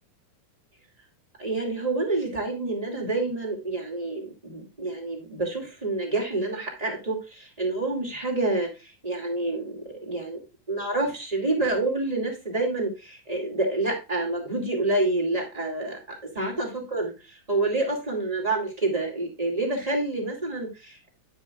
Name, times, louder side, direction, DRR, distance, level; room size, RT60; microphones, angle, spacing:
voice 1, 1.4-10.4 10.7-16.0 16.3-21.1, right 2 dB, 15° right, -1 dB, 1.8 m, -28 dB
10.0 x 7.2 x 2.4 m, 0.28 s
omnidirectional pair, 3.9 m